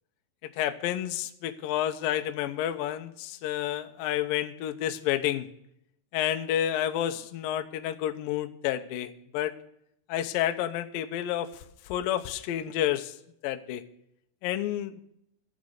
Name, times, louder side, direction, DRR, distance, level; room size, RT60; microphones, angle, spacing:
voice 1, 0.4-5.5 6.1-9.5 10.1-13.1 13.4-13.8 14.4-15.0, left 11 dB, 80° left, 8 dB, 2.0 m, -30 dB
11.5 x 9.3 x 6.6 m, 0.74 s
omnidirectional pair, 5.1 m